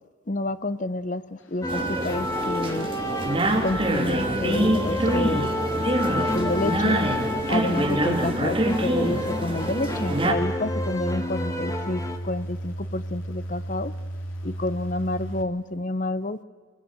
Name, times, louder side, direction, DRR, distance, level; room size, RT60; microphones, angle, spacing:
voice 1, 0.3-2.9 3.6-5.5 6.1-7.0 7.5-13.9 14.4-16.4, left 2 dB, 40° left, 14 dB, 0.8 m, -29 dB
sound 1, 1.4-15.4, equal, 85° left, 3.2 m, -36 dB
sound 2, 1.6-12.2, left 1 dB, 15° left, 1.9 m, -30 dB
sound 3, 1.7-10.3, right 1 dB, 25° right, 3.1 m, -25 dB
25.5 x 22.5 x 9.2 m, 1.5 s
head